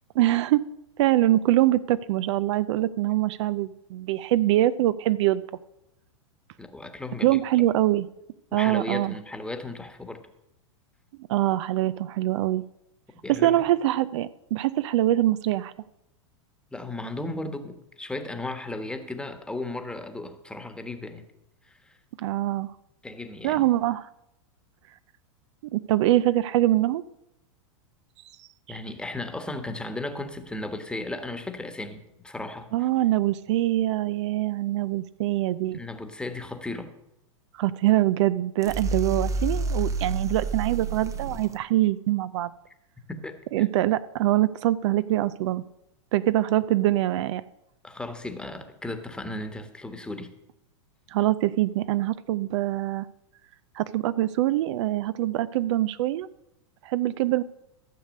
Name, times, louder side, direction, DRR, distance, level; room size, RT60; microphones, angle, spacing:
voice 1, 0.2-0.6 1.0-5.4 7.2-8.1 8.5-9.1 11.3-12.6 13.3-15.7 22.2-22.7 23.4-24.1 25.7-27.0 28.7-28.8 32.7-35.8 37.6-42.5 43.5-45.6 46.1-47.4 51.1-53.1 53.8-56.3 56.8-57.4, right 15 dB, 65° right, 15 dB, 0.5 m, -24 dB
voice 2, 6.6-7.4 8.5-10.3 13.2-13.6 16.7-21.2 21.7-22.0 23.0-23.6 28.7-32.9 35.7-36.9 43.1-43.4 47.8-50.3, left 2 dB, 5° left, 8 dB, 1.3 m, -35 dB
sound 1, 38.6-41.6, right 3 dB, 20° right, 0.7 m, -29 dB
14.0 x 6.6 x 6.5 m, 0.85 s
hypercardioid pair, 120°, 16 cm